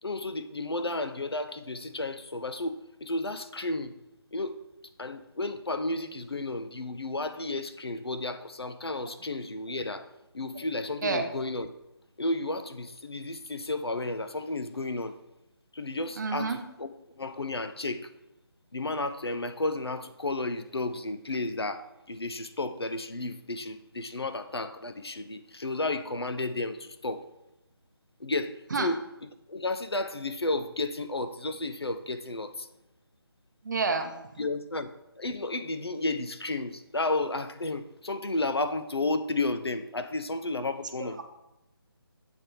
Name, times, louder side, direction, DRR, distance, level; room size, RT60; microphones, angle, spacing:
voice 1, 0.0-4.0 4.3-4.6 5.0-10.1 10.3-11.7 12.2-15.2 15.7-18.1 18.7-27.3 28.2-29.0 29.5-32.7 34.4-34.9 35.2-41.2, left 2 dB, 80° left, 10 dB, 0.6 m, -32 dB
voice 2, 16.2-16.6 28.7-28.9 33.6-34.2 41.0-41.1, right 4 dB, 50° right, 6 dB, 0.7 m, -28 dB
7.4 x 3.4 x 4.6 m, 0.89 s
figure-of-eight pair, 150°, 13 cm